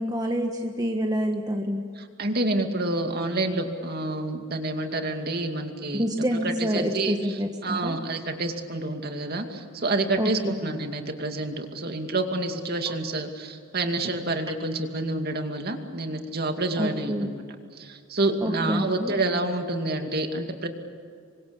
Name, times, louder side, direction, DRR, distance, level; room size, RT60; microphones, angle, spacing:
voice 1, 0.0-1.8 5.9-8.0 10.2-10.6 16.8-17.3 18.4-19.1, equal, 20° right, 3 dB, 1.4 m, -27 dB
voice 2, 2.0-6.0 6.4-7.1 7.6-17.4 17.8-20.7, right 2 dB, 45° right, 5 dB, 2.4 m, -28 dB
28.0 x 24.5 x 7.1 m, 2.2 s
head